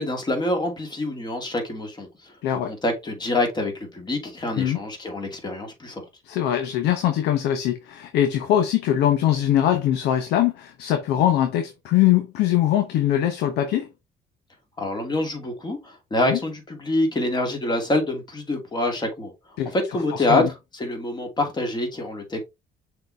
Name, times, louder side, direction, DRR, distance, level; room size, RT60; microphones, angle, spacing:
voice 1, 0.0-2.3 2.6-6.0 14.8-19.3 19.7-22.4, left 2 dB, 25° left, 2.6 m, -26 dB
voice 2, 6.2-13.9 16.2-16.4 19.6-19.7 20.1-20.5, left 11 dB, 80° left, 1.0 m, -22 dB
6.5 x 4.3 x 3.4 m
cardioid pair, 110°, 17 cm